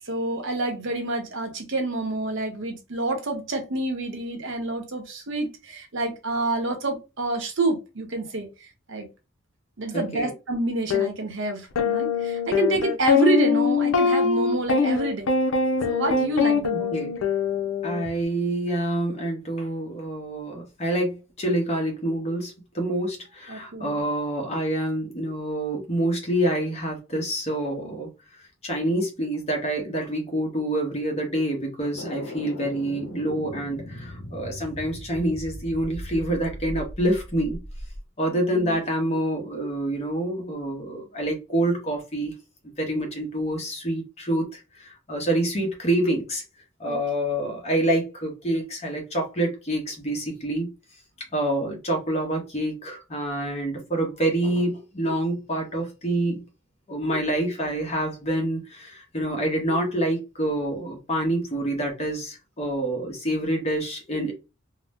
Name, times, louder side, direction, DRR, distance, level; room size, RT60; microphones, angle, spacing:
voice 1, 0.1-8.5 8.9-9.1 9.8-15.3 15.8-16.9 23.5-24.0 38.5-38.8 46.9-47.0, right 2 dB, 65° right, 0.8 m, -28 dB
voice 2, 9.9-10.3 16.7-17.1 17.8-28.1 28.6-37.6 38.2-42.3 42.8-46.4 46.8-50.7 51.3-56.4 56.9-64.3, right 1 dB, 30° left, 0.9 m, -27 dB
sound 1, 10.9-11.1 11.8-18.1, left 5 dB, 85° left, 0.5 m, -23 dB
sound 2, 31.9-38.0, left 1 dB, 60° left, 0.9 m, -38 dB
2.8 x 2.0 x 3.3 m
head